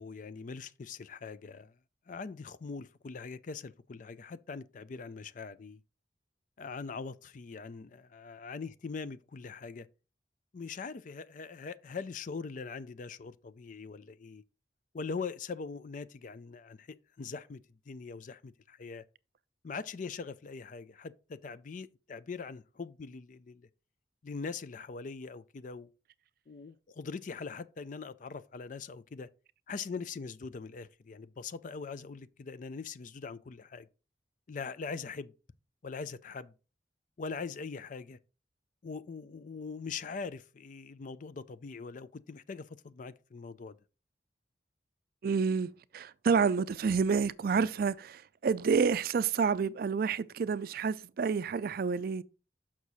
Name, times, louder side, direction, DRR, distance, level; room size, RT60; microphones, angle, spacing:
voice 1, 0.0-1.7 2.1-5.8 6.6-9.9 10.5-14.4 14.9-19.0 19.6-23.7 24.2-25.9 26.5-29.3 29.7-33.9 34.5-35.3 35.8-36.5 37.2-38.2 38.8-43.8, left 5 dB, 45° left, 0.4 m, -42 dB
voice 2, 45.2-52.2, right 5 dB, 55° right, 0.4 m, -29 dB
6.4 x 6.0 x 4.1 m
head